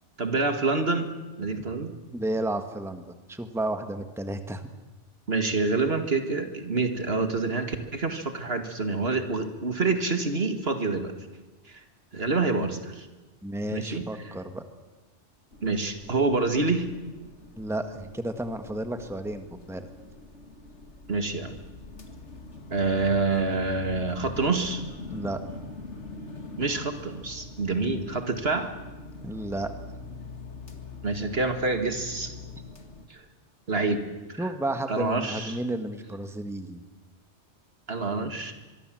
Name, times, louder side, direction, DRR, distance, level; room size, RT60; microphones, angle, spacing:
voice 1, 0.2-1.1 1.4-1.9 5.3-11.1 11.7-11.8 12.1-13.1 13.7-14.0 15.6-16.9 21.1-21.6 22.7-24.9 26.6-28.8 31.0-32.3 33.1-33.2 33.7-34.0 34.3-34.5 34.9-35.6 37.9-38.5, right 3 dB, 60° right, 7 dB, 2.2 m, -27 dB
voice 2, 2.1-4.6 13.4-14.6 17.6-19.9 25.1-25.4 29.2-29.7 34.4-36.8, right 1 dB, ahead, 7 dB, 1.5 m, -32 dB
sound 1, 15.5-33.1, left 3 dB, 75° left, 2.4 m, -43 dB
24.5 x 23.0 x 7.7 m, 1.2 s
omnidirectional pair, 1.2 m